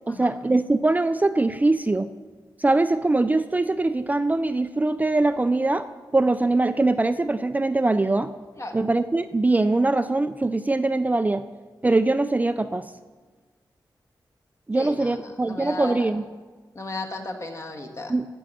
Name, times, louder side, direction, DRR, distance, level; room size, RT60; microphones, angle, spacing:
voice 1, 0.1-2.1 2.6-5.9 6.1-8.3 8.7-11.4 11.8-12.8 14.7-16.2 18.1-18.3, right 2 dB, 20° right, 10 dB, 0.4 m, -22 dB
voice 2, 14.7-16.2 16.7-18.1, left 2 dB, 35° left, 3 dB, 1.5 m, -35 dB
14.5 x 5.4 x 7.5 m, 1.4 s
wide cardioid pair, 80°, 8 cm